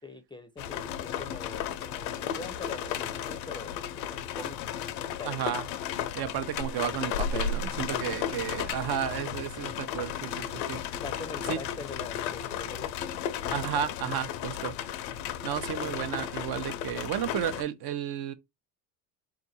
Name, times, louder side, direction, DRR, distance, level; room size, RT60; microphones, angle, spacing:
voice 1, 0.0-3.8 4.1-4.8 5.2-5.4 7.9-8.2 11.0-12.9, left 3 dB, 10° left, 0.5 m, -43 dB
sound 1, 0.6-17.6, left 8 dB, 90° left, 0.6 m, -34 dB
voice 2, 5.2-5.6 6.2-10.8 11.5-11.6 13.5-14.7 15.4-18.3, right 9 dB, 50° right, 0.7 m, -32 dB
3.7 x 2.5 x 4.1 m
supercardioid pair, 90°, 49 cm